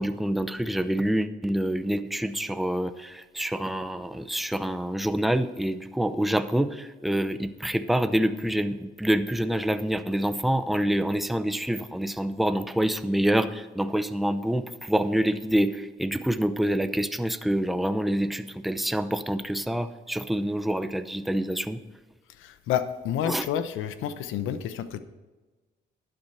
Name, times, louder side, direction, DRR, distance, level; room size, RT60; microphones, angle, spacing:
voice 1, 0.0-21.8 23.2-23.5, right 1 dB, ahead, 0.7 m, -26 dB
voice 2, 22.4-25.0, left 9 dB, 90° left, 0.9 m, -29 dB
11.5 x 9.0 x 4.3 m
cardioid pair, 90°, 20 cm